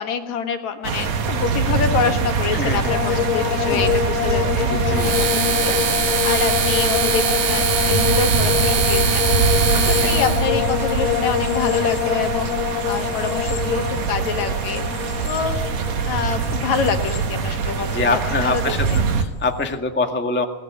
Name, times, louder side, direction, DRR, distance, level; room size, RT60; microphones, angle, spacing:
voice 1, 0.0-4.7 5.0-14.8 15.2-15.6 16.1-18.8, left 6 dB, 60° left, 7 dB, 2.7 m, -26 dB
sound 1, 0.8-19.2, right 5 dB, 55° right, 2.6 m, -23 dB
voice 2, 2.5-2.9 3.6-3.9 4.7-6.1 10.0-10.1 17.9-18.9 19.1-20.4, left 3 dB, 15° left, 4 dB, 0.3 m, -25 dB
sound 2, 2.9-18.1 18.3-19.0, left 10 dB, 80° left, 2.8 m, -25 dB
sound 3, 4.9-10.5, right 6 dB, 90° right, 4.0 m, -23 dB
22.0 x 18.0 x 8.8 m, 1.2 s
omnidirectional pair, 3.8 m